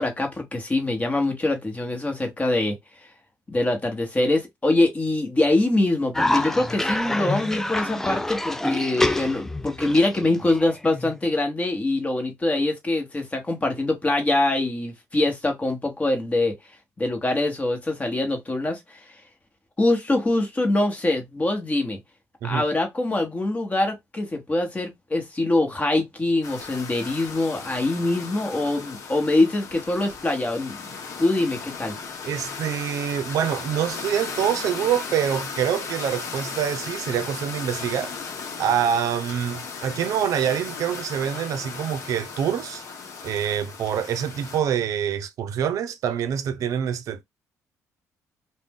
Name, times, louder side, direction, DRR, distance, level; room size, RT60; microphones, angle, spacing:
voice 1, 0.0-2.8 3.5-16.6 17.0-19.0 19.8-22.0 22.4-32.0, left 2 dB, 20° left, 1.1 m, -24 dB
Cough, 6.1-11.2, left 1 dB, 5° left, 0.3 m, -27 dB
sound 1, 26.4-44.6, left 5 dB, 55° left, 0.8 m, -36 dB
voice 2, 32.3-38.1 38.6-42.8 43.2-47.2, right 9 dB, 65° right, 0.5 m, -26 dB
2.5 x 2.1 x 3.5 m
cardioid pair, 95°, 6 cm